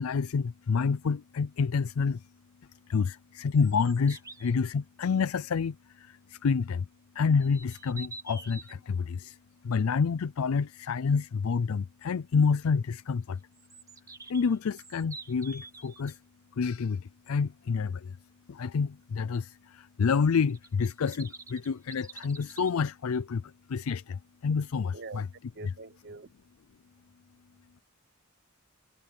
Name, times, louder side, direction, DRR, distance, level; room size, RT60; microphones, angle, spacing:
voice 1, 0.0-2.2 2.9-6.9 7.2-9.4 9.6-13.4 14.3-16.2 16.6-18.2 18.5-25.2, left 5 dB, 75° left, 0.4 m, -28 dB
sound 1, 3.5-4.5 7.4-8.7 13.5-16.1 20.5-22.7, right 3 dB, 15° right, 1.6 m, -47 dB
voice 2, 24.9-25.2 25.5-26.3, right 3 dB, 50° right, 0.8 m, -44 dB
head